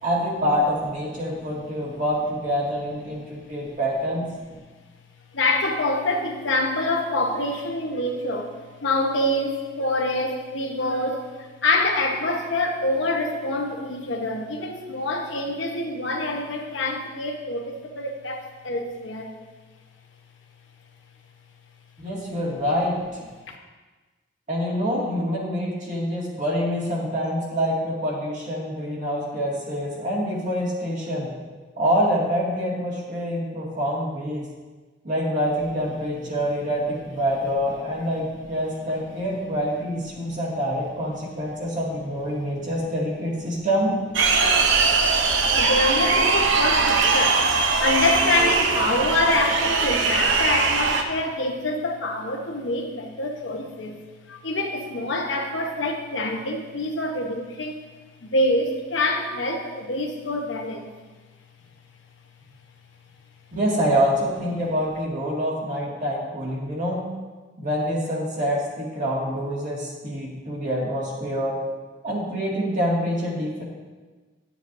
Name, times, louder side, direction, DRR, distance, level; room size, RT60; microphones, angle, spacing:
voice 1, 0.0-4.3 22.0-23.0 24.5-31.3 31.8-34.5 35.0-43.9 63.5-67.0 67.6-71.5 72.0-73.6, equal, 45° right, -4 dB, 2.0 m, -26 dB
voice 2, 5.3-8.5 8.8-19.3 23.5-23.6 37.8-37.9 40.1-40.4 42.3-42.7 45.5-47.5 47.8-54.0 54.3-57.9 58.2-60.9, left 2 dB, 80° left, 2 dB, 1.0 m, -26 dB
sound 1, 44.1-51.0, right 4 dB, 80° right, 0.7 m, -21 dB
10.0 x 7.0 x 2.6 m, 1.3 s
head